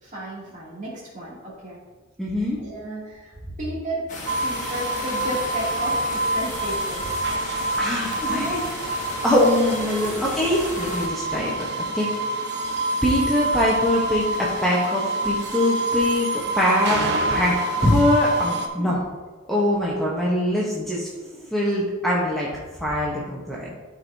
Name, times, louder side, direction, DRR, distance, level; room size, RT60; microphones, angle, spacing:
voice 1, 0.0-1.8 2.6-3.3 3.6-4.1 4.4-7.4 8.2-8.7 9.8-10.2 18.8-19.0, equal, 35° right, -6 dB, 2.4 m, -33 dB
voice 2, 2.2-2.6 7.8-8.6 9.2-12.1 13.0-16.3 16.5-17.0 17.3-17.5 17.8-19.0 19.5-22.5 22.8-23.7, left 1 dB, ahead, -6 dB, 0.9 m, -23 dB
sound 1, 4.1-11.1, left 2 dB, 35° left, 1.1 m, -35 dB
sound 2, 4.3-18.7, right 1 dB, 50° right, 0.8 m, -27 dB
12.5 x 4.6 x 2.7 m, 1.3 s
head